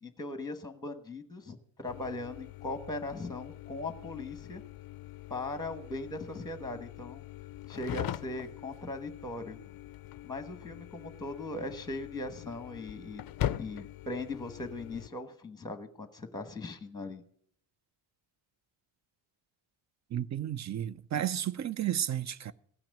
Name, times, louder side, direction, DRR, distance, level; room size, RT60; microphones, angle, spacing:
voice 1, 0.0-4.6 5.3-7.2 7.7-9.6 10.2-13.2 13.6-17.2, left 2 dB, 10° left, 1.2 m, -39 dB
sound 1, 1.9-15.1, left 12 dB, 45° left, 0.5 m, -42 dB
voice 2, 20.1-22.5, right 10 dB, 35° right, 0.5 m, -32 dB
16.0 x 5.9 x 8.8 m
wide cardioid pair, 150°, 50 cm